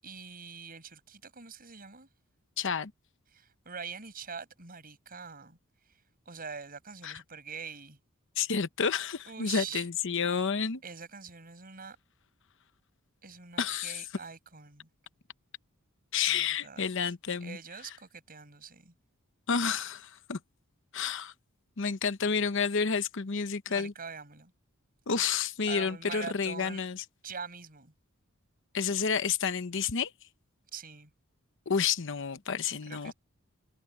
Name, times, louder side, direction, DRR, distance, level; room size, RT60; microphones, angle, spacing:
voice 1, 0.0-2.1 3.3-5.6 6.2-8.0 9.3-9.8 10.8-12.0 13.2-14.9 16.3-16.8 17.4-18.9 23.7-24.5 25.7-26.8 27.2-27.9 30.7-31.1 32.9-33.1, right 6 dB, 40° right, 6.8 m, -44 dB
voice 2, 2.6-2.9 7.0-7.2 8.4-10.8 13.6-14.0 16.1-17.6 19.5-20.4 20.9-21.3 21.8-23.9 25.1-27.0 28.7-30.1 31.7-33.1, left 6 dB, 60° left, 0.9 m, -30 dB
head